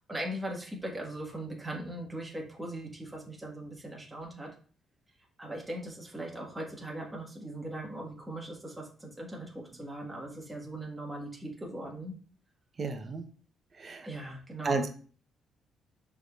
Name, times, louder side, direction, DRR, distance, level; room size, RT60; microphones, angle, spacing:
voice 1, 0.1-4.5 5.4-12.1 14.0-14.9, right 1 dB, 10° right, -2 dB, 1.4 m, -39 dB
voice 2, 12.8-13.3 13.8-14.1 14.6-14.9, right 3 dB, 40° right, 7 dB, 0.7 m, -32 dB
6.2 x 3.5 x 2.3 m, 0.42 s
cardioid pair, 90°, 0 cm